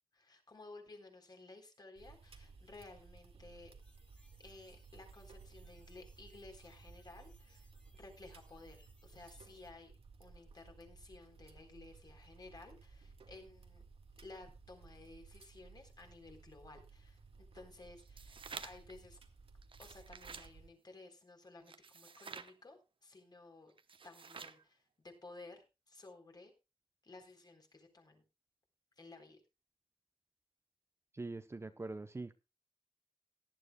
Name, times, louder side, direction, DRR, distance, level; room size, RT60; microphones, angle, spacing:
voice 1, 0.1-3.7 4.4-13.9 14.2-17.2 17.5-18.4 18.6-19.2 19.8-23.7 24.0-26.5 27.0-28.2 29.0-29.4, left 2 dB, 45° left, 4 dB, 3.8 m, -56 dB
sound 1, 2.0-20.7, right 4 dB, 90° right, 1.9 m, -58 dB
sound 2, 3.8-9.7, equal, 10° left, 2.9 m, -71 dB
sound 3, 18.0-18.9 19.6-20.5 21.7-22.5 23.8-24.6, right 5 dB, 65° right, 0.9 m, -50 dB
voice 2, 31.1-32.3, right 3 dB, 25° right, 9 dB, 0.8 m, -43 dB
18.0 x 11.5 x 2.3 m, 0.27 s
wide cardioid pair, 135°, 10 cm